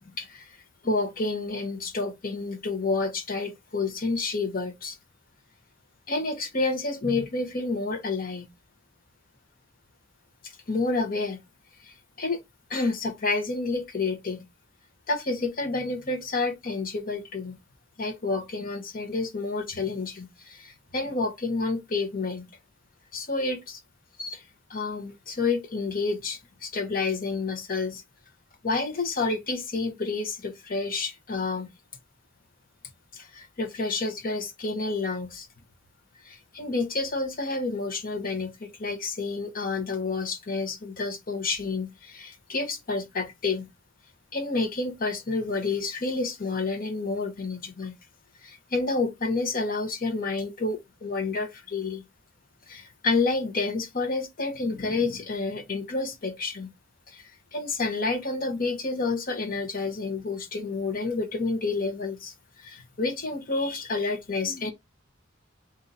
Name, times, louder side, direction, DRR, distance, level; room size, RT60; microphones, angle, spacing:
voice 1, 0.2-0.5 0.8-5.0 6.1-8.5 10.4-11.4 11.8-11.9 12.2-12.4 12.7-14.4 15.1-17.5 18.0-22.5 23.1-23.8 24.2-24.4 24.7-28.0 28.6-31.7 33.1-35.5 36.2-43.6 44.3-47.9 48.4-52.0 52.7-56.7 57.1-57.2 57.5-62.3 62.6-64.7, left 3 dB, 45° left, 1.1 m, -29 dB
3.9 x 2.7 x 4.0 m
head